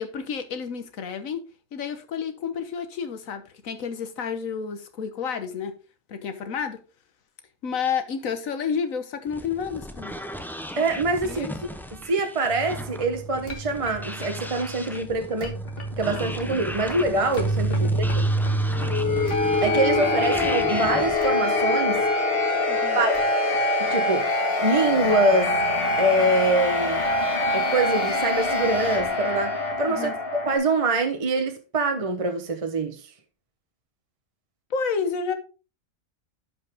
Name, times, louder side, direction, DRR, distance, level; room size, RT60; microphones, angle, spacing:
voice 1, 0.0-1.4 1.7-5.7 6.1-6.8 7.6-10.1 11.2-11.5 17.8-17.9 22.7-23.0 29.9-30.1 34.7-35.3, left 6 dB, 85° left, 1.5 m, -30 dB
sound 1, 9.3-21.2, equal, 5° left, 0.4 m, -37 dB
voice 2, 10.8-11.5 12.0-15.6 15.9-18.3 19.6-22.1 22.9-23.2 23.8-24.3 24.6-25.6 26.0-27.0 27.5-33.1, right 2 dB, 30° right, 0.9 m, -24 dB
sound 2, 12.5-30.6, left 1 dB, 45° left, 1.7 m, -25 dB
10.5 x 5.3 x 3.4 m
omnidirectional pair, 1.4 m